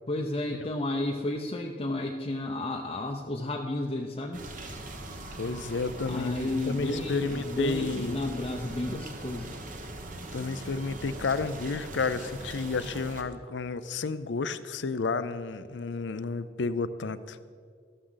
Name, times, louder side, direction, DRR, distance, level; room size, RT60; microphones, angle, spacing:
voice 1, 0.1-4.4 6.1-9.5, left 1 dB, 30° left, 1 dB, 0.6 m, -32 dB
sound 1, 4.3-13.2, right 1 dB, 45° right, 1.2 m, -41 dB
voice 2, 5.4-8.2 10.3-17.4, left 4 dB, 80° left, 14 dB, 0.5 m, -31 dB
13.5 x 12.5 x 4.0 m, 2.1 s
head